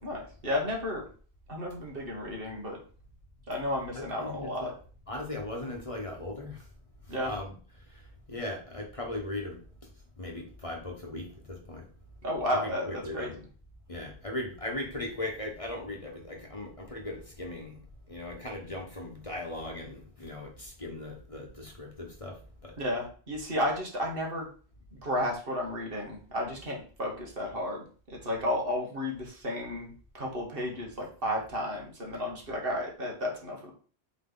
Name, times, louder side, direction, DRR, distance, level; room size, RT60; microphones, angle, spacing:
voice 1, 0.0-1.0 1.5-2.8 3.5-4.7 7.1-7.3 12.2-13.3 22.8-24.5 24.9-27.8 28.1-33.7, left 1 dB, 60° right, -1 dB, 1.8 m, -32 dB
voice 2, 3.9-4.7 5.1-6.6 7.2-7.5 8.3-9.6 10.2-11.8 12.5-13.4 13.9-17.7 18.1-22.4 22.6-22.7, left 1 dB, 30° left, 0 dB, 1.3 m, -38 dB
7.7 x 3.3 x 3.9 m, 0.41 s
omnidirectional pair, 1.1 m